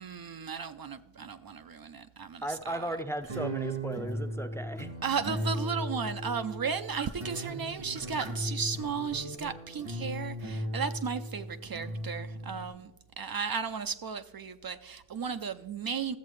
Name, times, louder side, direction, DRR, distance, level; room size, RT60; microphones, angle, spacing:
voice 1, 0.0-3.0 5.0-12.9 13.2-16.2, right 6 dB, 50° right, 0.5 m, -35 dB
voice 2, 2.4-4.9, right 1 dB, 5° left, 0.5 m, -36 dB
sound 1, 3.2-12.7, right 1 dB, 85° right, 1.6 m, -37 dB
13.5 x 7.4 x 3.1 m
wide cardioid pair, 55°, 46 cm